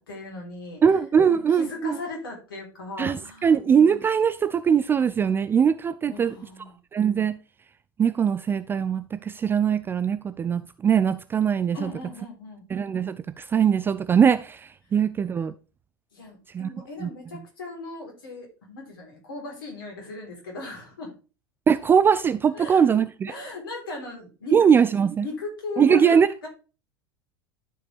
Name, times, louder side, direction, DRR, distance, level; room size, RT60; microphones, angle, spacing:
voice 1, 0.0-0.8 1.3-3.6 6.1-6.8 11.7-12.6 16.1-21.1 22.5-22.8 23.3-24.5 25.2-26.5, left 3 dB, 65° left, 3.6 m, -37 dB
voice 2, 0.8-2.0 3.0-6.3 6.9-7.4 8.0-11.9 12.7-15.5 16.5-16.7 17.0-17.1 21.7-23.3 24.5-25.3 25.8-26.3, right 7 dB, 15° right, 0.3 m, -21 dB
12.0 x 5.0 x 3.3 m
figure-of-eight pair, 80°, 12 cm